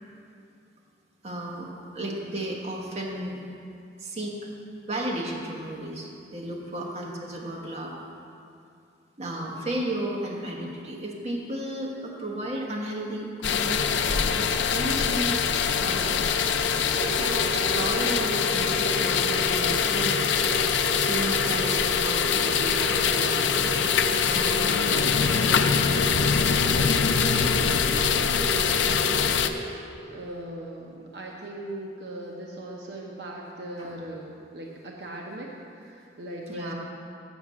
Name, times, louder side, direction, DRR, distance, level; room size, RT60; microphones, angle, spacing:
voice 1, 1.2-3.4 4.0-4.4 4.9-7.9 9.2-15.4 15.8-16.2 17.2-20.6 21.0-23.9 24.3-24.9 33.8-33.9 36.5-36.7, right 1 dB, 35° right, -2 dB, 1.1 m, -34 dB
sound 1, 13.4-29.5, left 7 dB, 80° left, 0.4 m, -24 dB
sound 2, 16.9-30.1, right 2 dB, 5° left, 1.5 m, -33 dB
voice 2, 21.4-21.8 26.5-26.9 27.3-29.8 30.1-36.7, right 1 dB, 65° right, -1 dB, 0.8 m, -40 dB
7.2 x 5.8 x 7.3 m, 2.5 s
head